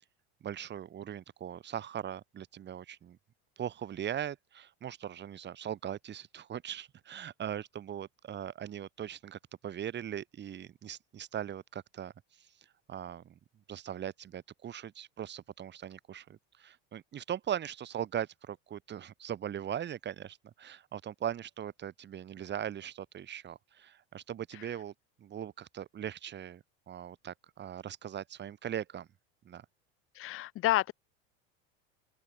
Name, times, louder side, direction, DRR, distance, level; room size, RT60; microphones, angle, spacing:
voice 1, 0.4-3.2 3.6-12.1 12.9-13.4 13.7-24.9 25.2-29.1 29.4-29.6, right 10 dB, 35° right, 4.5 m, -40 dB
voice 2, 30.1-30.9, left 15 dB, 45° left, 1.1 m, -29 dB
open air
supercardioid pair, 120°, 31 cm